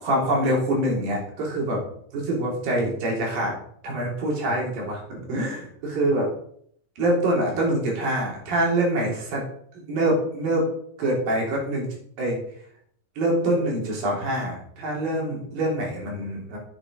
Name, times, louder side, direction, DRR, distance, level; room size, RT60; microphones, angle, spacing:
voice 1, 0.0-1.8 2.1-3.5 3.8-6.3 7.0-9.4 9.8-10.7 11.0-11.9 12.2-12.4 13.2-16.6, right 1 dB, 80° right, -2 dB, 5.2 m, -25 dB
9.3 x 8.8 x 5.2 m, 0.65 s
omnidirectional pair, 3.9 m